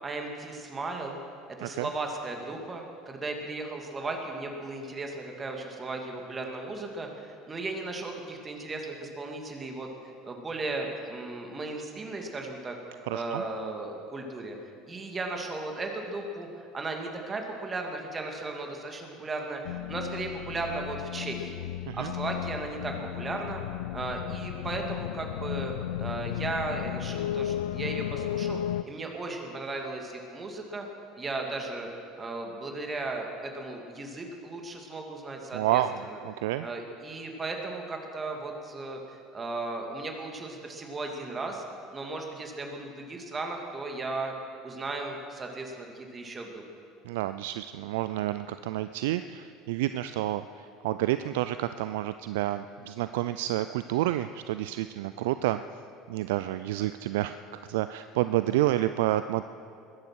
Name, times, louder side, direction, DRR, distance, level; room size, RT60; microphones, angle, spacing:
voice 1, 0.0-1.2 1.6-9.9 10.2-12.8 13.1-14.6 14.9-21.7 21.9-23.6 23.9-25.7 26.0-28.6 28.8-30.9 31.1-31.9 32.2-36.2 36.6-41.6 41.9-44.3 44.6-46.6, right 3 dB, 25° right, 2 dB, 2.6 m, -36 dB
voice 2, 13.1-13.4 21.9-22.1 35.5-36.7 47.1-55.6 56.1-57.4 57.7-59.5, right 14 dB, 70° right, 12 dB, 0.4 m, -29 dB
sound 1, 19.6-28.8, left 12 dB, 75° left, 0.4 m, -34 dB
21.5 x 10.5 x 6.2 m, 2.4 s
hypercardioid pair, 70°, 0 cm